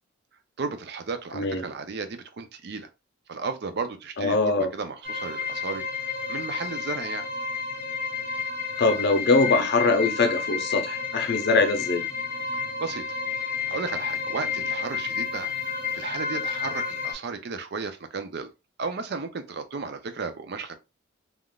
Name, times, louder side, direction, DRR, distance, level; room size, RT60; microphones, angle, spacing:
voice 1, 0.6-2.9 3.3-5.8 6.3-7.3 9.5-9.7 12.8-13.0 13.7-15.5 15.9-18.5 18.8-20.7, right 4 dB, 55° right, 0.5 m, -34 dB
voice 2, 1.3-1.7 4.2-4.7 8.8-12.0, left 3 dB, 55° left, 0.6 m, -22 dB
sound 1, 5.0-17.1, left 6 dB, 10° right, 0.9 m, -31 dB
3.5 x 2.4 x 2.3 m
head